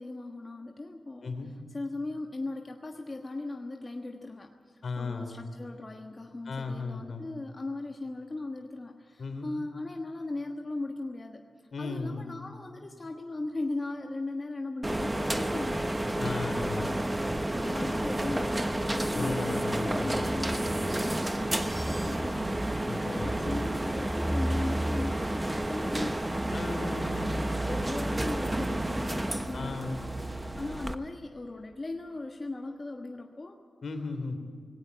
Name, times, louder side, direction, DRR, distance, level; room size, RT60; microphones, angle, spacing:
voice 1, 0.0-1.3 1.7-16.0 16.5-17.3 17.6-26.3 26.8-27.1 27.7-30.0 30.4-33.6, left 2 dB, 30° left, 3 dB, 1.4 m, -38 dB
voice 2, 4.8-5.4 6.4-7.3 9.2-9.5 11.7-12.3 16.2-16.9 19.1-20.2 22.9-23.3 26.5-27.6 29.5-30.0 33.8-34.4, left 3 dB, 60° left, 6 dB, 3.3 m, -36 dB
sound 1, 14.8-30.9, right 1 dB, 15° right, 1.2 m, -30 dB
19.0 x 17.5 x 9.6 m, 2.2 s
cardioid pair, 85°, 0 cm